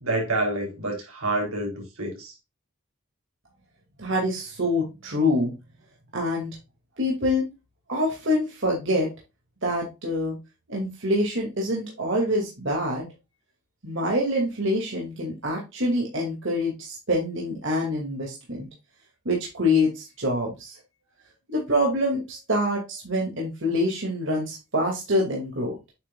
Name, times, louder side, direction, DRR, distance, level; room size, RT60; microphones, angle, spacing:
voice 1, 0.0-2.3, right 2 dB, 85° right, 3.9 m, -28 dB
voice 2, 4.0-5.5 6.1-6.6 7.0-7.5 7.9-9.1 9.6-10.4 10.7-13.1 13.8-18.7 19.2-20.8 21.5-25.7, left 1 dB, 60° right, 2.5 m, -25 dB
8.6 x 6.2 x 2.4 m
head